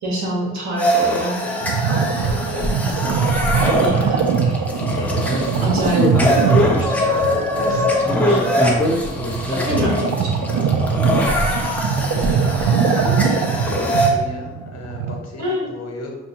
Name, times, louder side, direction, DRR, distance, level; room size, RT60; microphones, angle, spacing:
voice 1, 0.0-1.4 1.9-3.2 3.8-6.1 6.5-8.6 9.5-10.7 11.4-11.6 15.4-15.7, equal, 65° right, -3 dB, 1.5 m, -28 dB
sound 1, 0.8-14.1, left 1 dB, 5° left, 0.9 m, -22 dB
sound 2, 1.6-15.1, right 6 dB, 85° right, 0.5 m, -22 dB
voice 2, 12.1-16.2, left 2 dB, 60° left, 1 dB, 1.3 m, -34 dB
6.5 x 2.6 x 2.8 m, 1.2 s
cardioid pair, 90°, 30 cm